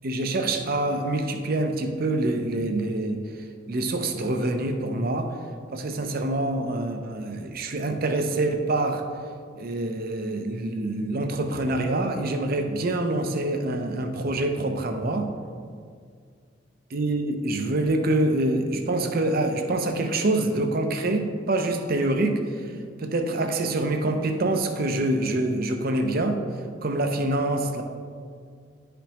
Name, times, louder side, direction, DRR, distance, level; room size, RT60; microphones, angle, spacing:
voice 1, 0.0-3.2 3.7-5.4 5.7-9.0 9.6-15.3 16.9-26.4 26.8-27.8, right 2 dB, 50° right, 6 dB, 0.6 m, -26 dB
10.5 x 5.1 x 3.0 m, 2.1 s
head